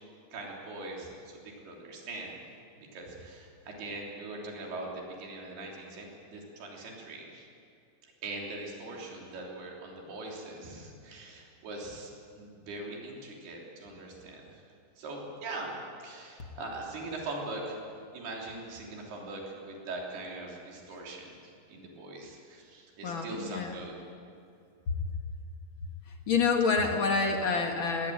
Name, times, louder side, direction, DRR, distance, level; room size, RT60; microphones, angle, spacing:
voice 1, 0.3-1.4 1.6-2.4 2.8-7.5 8.0-12.1 12.4-14.6 15.0-17.8 18.1-24.0, right 2 dB, 90° right, -1 dB, 5.3 m, -41 dB
voice 2, 23.0-23.7 26.3-28.1, left 4 dB, 50° left, 4 dB, 1.6 m, -27 dB
20.0 x 18.0 x 9.2 m, 2.5 s
omnidirectional pair, 4.4 m